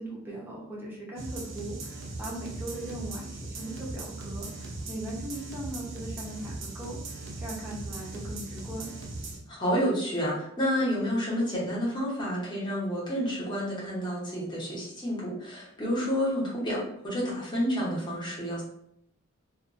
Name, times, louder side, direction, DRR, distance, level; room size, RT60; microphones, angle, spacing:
voice 1, 0.0-8.9, right 1 dB, 10° right, -4 dB, 0.7 m, -39 dB
sound 1, 1.2-9.4, right 2 dB, 65° right, 0.5 m, -39 dB
voice 2, 9.5-18.6, equal, 20° left, -6 dB, 0.9 m, -29 dB
2.5 x 2.3 x 2.5 m, 0.73 s
head